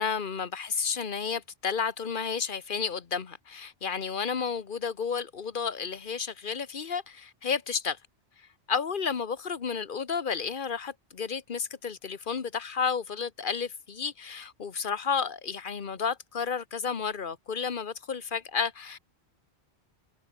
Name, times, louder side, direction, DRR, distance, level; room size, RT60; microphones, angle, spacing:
voice 1, 0.0-8.0 8.7-19.0, left 6 dB, 50° left, 1.3 m, -32 dB
omnidirectional pair, 1.1 m